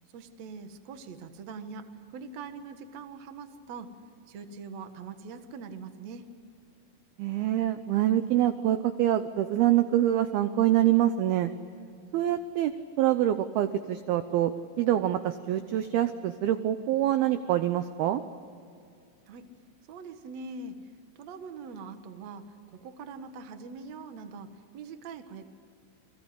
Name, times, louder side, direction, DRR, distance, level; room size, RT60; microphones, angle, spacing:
voice 1, 0.1-3.9 4.3-6.3 19.3-19.5 19.9-25.5, right 4 dB, 60° right, 7 dB, 1.8 m, -43 dB
voice 2, 7.2-11.5 12.1-14.5 14.8-18.2, right 12 dB, 85° right, 10 dB, 2.2 m, -25 dB
29.0 x 22.5 x 8.1 m, 2.4 s
omnidirectional pair, 5.5 m